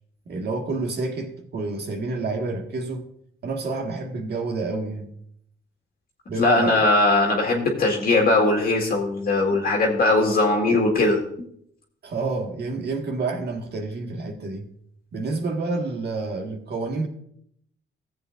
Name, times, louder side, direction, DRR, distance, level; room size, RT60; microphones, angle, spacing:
voice 1, 0.3-3.1 3.4-5.1 6.3-6.9 12.0-14.7 15.1-17.1, right 3 dB, 55° right, 3 dB, 1.7 m, -28 dB
voice 2, 6.4-11.2, left 2 dB, 45° left, -1 dB, 1.9 m, -20 dB
15.5 x 7.9 x 2.6 m, 0.69 s
cardioid pair, 90°, 20 cm